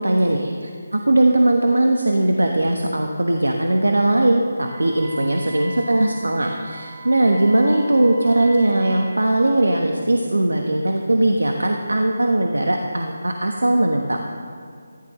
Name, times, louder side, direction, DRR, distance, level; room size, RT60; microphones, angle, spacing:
voice 1, 0.0-14.2, right 1 dB, 90° right, 3 dB, 1.2 m, -19 dB
Wind instrument woodwind instrument, 4.6-9.2, right 2 dB, 45° right, 1.4 m, -38 dB
18.5 x 14.5 x 3.2 m, 2.2 s
figure-of-eight pair, 160°, 0 cm